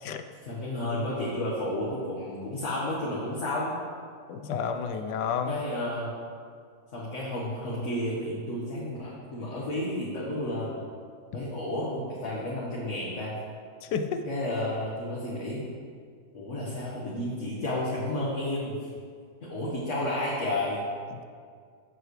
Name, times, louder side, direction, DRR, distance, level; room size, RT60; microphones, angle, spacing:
voice 1, 0.4-3.8 5.4-6.1 6.9-10.7 11.3-13.3 14.2-15.7 16.3-18.9 19.4-20.8, left 1 dB, 45° left, -6 dB, 1.8 m, -31 dB
voice 2, 4.3-5.6 13.8-14.2, left 6 dB, 90° left, 8 dB, 1.3 m, -30 dB
15.5 x 7.7 x 3.3 m, 2.1 s
omnidirectional pair, 1.8 m